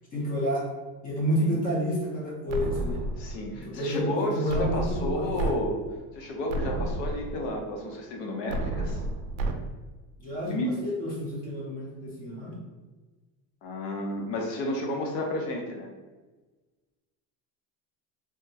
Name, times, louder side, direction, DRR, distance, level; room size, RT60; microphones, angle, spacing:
voice 1, 0.1-0.7 1.0-3.0 3.5-5.3 10.2-12.6, equal, 25° left, -4 dB, 0.5 m, -30 dB
sound 1, 2.5-3.5 4.5-5.5 6.0-6.1 6.5-7.5 8.5-9.5, right 2 dB, 80° right, 0.5 m, -31 dB
voice 2, 3.2-5.8 6.1-9.0 10.4-10.7 13.6-15.9, left 1 dB, 65° left, 1 dB, 0.7 m, -31 dB
3.5 x 2.0 x 2.7 m, 1.3 s
cardioid pair, 180°, 37 cm